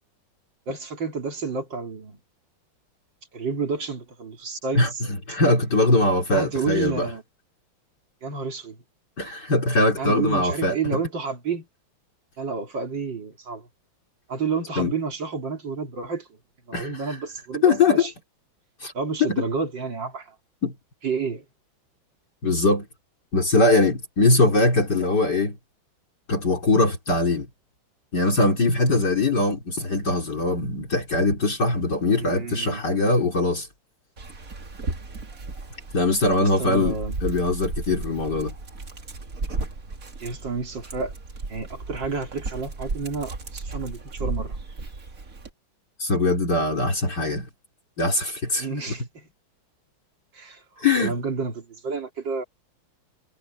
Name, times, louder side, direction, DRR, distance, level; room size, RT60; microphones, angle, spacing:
voice 1, 0.7-2.2 3.3-5.0 6.3-7.2 8.2-8.8 10.0-11.7 12.4-13.7 14.3-16.3 16.7-18.1 18.9-20.4 21.0-21.5 32.2-32.8 36.4-37.1 40.2-41.1 41.5-44.6 48.6-49.3 50.3-52.4, right 4 dB, 60° right, 3.7 m, -30 dB
voice 2, 4.7-7.1 9.2-10.8 14.8-14.9 16.7-17.2 17.6-18.1 18.8-18.9 19.2-19.4 20.6-20.7 22.4-22.9 23.3-25.6 26.3-27.5 28.1-33.7 35.9-38.5 46.0-47.5 48.0-48.9 50.8-51.2, left 2 dB, 55° left, 3.9 m, -22 dB
Dog, 34.2-45.5, right 3 dB, 40° right, 2.6 m, -34 dB
omnidirectional pair, 2.2 m